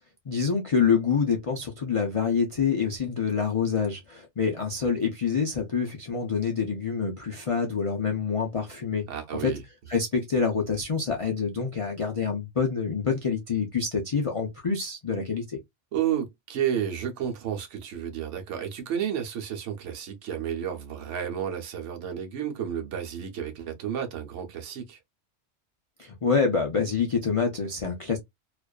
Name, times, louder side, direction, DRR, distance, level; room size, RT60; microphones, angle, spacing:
voice 1, 0.3-9.0 9.4-9.5 9.9-15.6 26.0-28.2, left 5 dB, 60° left, 0.3 m, -26 dB
voice 2, 9.1-9.6 15.9-25.0, right 9 dB, 75° right, 1.0 m, -31 dB
2.5 x 2.2 x 2.2 m
omnidirectional pair, 1.3 m